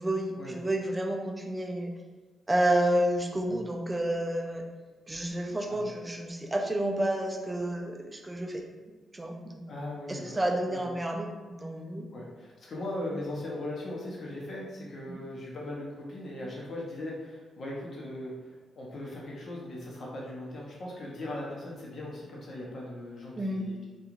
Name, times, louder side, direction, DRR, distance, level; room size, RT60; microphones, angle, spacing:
voice 1, 0.0-1.9 2.5-4.6 5.1-8.6 9.1-9.6 10.1-12.1 15.1-15.2 23.4-23.7, right 1 dB, 20° right, 2 dB, 0.4 m, -30 dB
voice 2, 9.7-10.4 10.7-10.9 12.1-24.0, left 1 dB, 55° left, -4 dB, 0.8 m, -39 dB
2.9 x 2.3 x 2.4 m, 1.3 s
cardioid pair, 80°, 0 cm